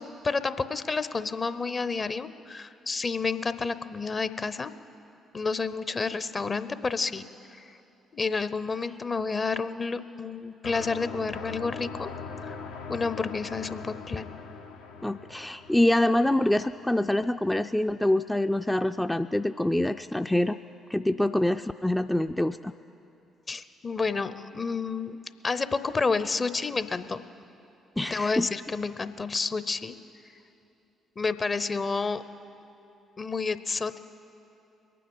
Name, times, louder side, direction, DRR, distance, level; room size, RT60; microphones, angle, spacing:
voice 1, 0.0-4.7 5.3-7.8 8.1-12.1 12.4-12.6 12.9-14.3 23.5-25.2 25.4-27.2 28.1-30.0 31.2-32.2 33.2-34.0, left 4 dB, 35° left, 13 dB, 0.7 m, -30 dB
sound 1, 10.6-17.4, left 4 dB, 80° left, 0.8 m, -41 dB
voice 2, 15.0-20.6 20.9-22.7 28.0-28.5, left 1 dB, 10° left, 7 dB, 0.4 m, -25 dB
23.0 x 9.3 x 5.5 m, 2.9 s
hypercardioid pair, 45°, 0 cm